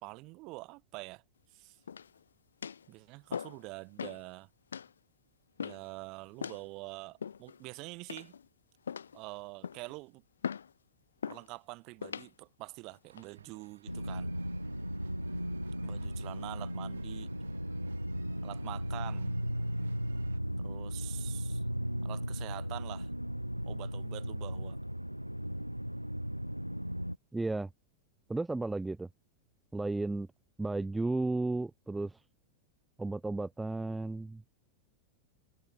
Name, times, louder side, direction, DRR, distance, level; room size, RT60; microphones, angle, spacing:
voice 1, 0.0-1.2 1.5-1.8 2.9-4.5 5.6-8.4 9.1-10.2 11.3-14.3 15.8-17.3 18.4-19.4 20.6-21.6 22.0-23.1 23.6-24.8, right 24 dB, 40° right, 2.3 m, -46 dB
sound 1, 1.9-2.2 2.6-2.9 3.3-3.6 4.0-4.2 4.7-4.9 5.6-5.9 6.4-6.6 7.2-7.6 8.1-8.5 8.9-9.2 9.6-9.9 10.4-10.7 11.2-11.5 12.0-12.3 12.9-13.2, left 7 dB, 70° left, 1.3 m, -40 dB
sound 2, 13.1-20.4, right 7 dB, 70° right, 5.9 m, -59 dB
sound 3, 13.9-27.2, equal, 90° right, 1.1 m, -36 dB
voice 2, 27.3-27.7 28.3-29.1 29.7-30.3 30.6-32.2 33.0-34.4, right 2 dB, 10° right, 0.7 m, -33 dB
figure-of-eight pair, 90°, 0 cm